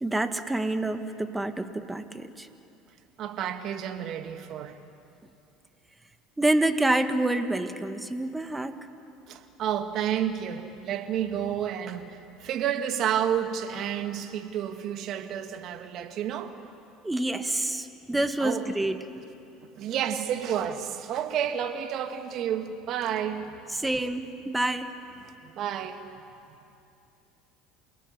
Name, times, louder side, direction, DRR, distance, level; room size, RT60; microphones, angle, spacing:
voice 1, 0.0-2.5 6.4-8.8 17.0-19.0 23.7-24.9, right 2 dB, 10° right, 8 dB, 1.8 m, -27 dB
voice 2, 3.2-4.8 9.3-16.5 18.4-18.7 19.8-23.6 25.2-26.0, right 9 dB, 55° right, 7 dB, 2.1 m, -30 dB
28.5 x 18.5 x 9.8 m, 2.7 s
hypercardioid pair, 80°, 0 cm